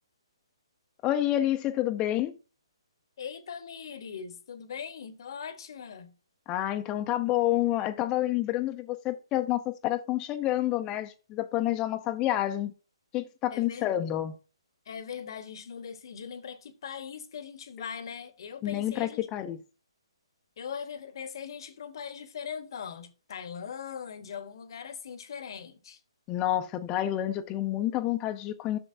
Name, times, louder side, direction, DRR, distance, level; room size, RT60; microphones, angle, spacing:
voice 1, 1.0-2.3 6.5-12.7 13.1-14.3 18.6-19.6 26.3-28.8, left 13 dB, 20° left, 0.7 m, -28 dB
voice 2, 3.2-6.1 13.5-13.9 14.9-19.3 20.6-26.0, left 7 dB, 55° left, 1.2 m, -40 dB
11.0 x 7.0 x 2.7 m
figure-of-eight pair, 140°, 3 cm